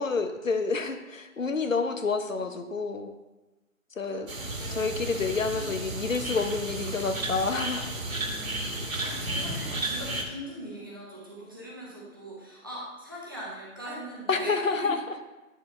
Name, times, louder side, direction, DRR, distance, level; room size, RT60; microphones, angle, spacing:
voice 1, 0.0-3.1 4.0-4.3 4.7-7.9 14.3-15.0, left 4 dB, 70° left, 7 dB, 1.0 m, -28 dB
sound 1, 4.3-10.2, right 1 dB, 80° right, 1.7 m, -33 dB
voice 2, 4.5-4.9 5.5-5.7 9.0-14.9, right 1 dB, 15° right, -6 dB, 0.9 m, -41 dB
9.0 x 7.0 x 3.2 m, 1.1 s
figure-of-eight pair, 165°, 41 cm